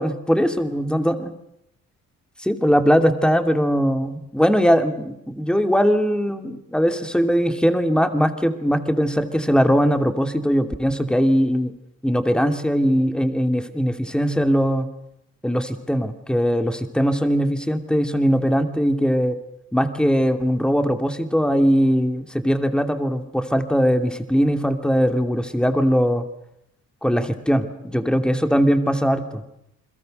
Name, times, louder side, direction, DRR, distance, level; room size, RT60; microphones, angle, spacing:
voice 1, 0.0-1.3 2.4-11.7 12.0-14.9 15.4-19.4 19.7-26.2 27.0-29.4, equal, 5° left, 7 dB, 2.7 m, -20 dB
29.5 x 21.5 x 6.6 m, 0.80 s
cardioid pair, 90°, 30 cm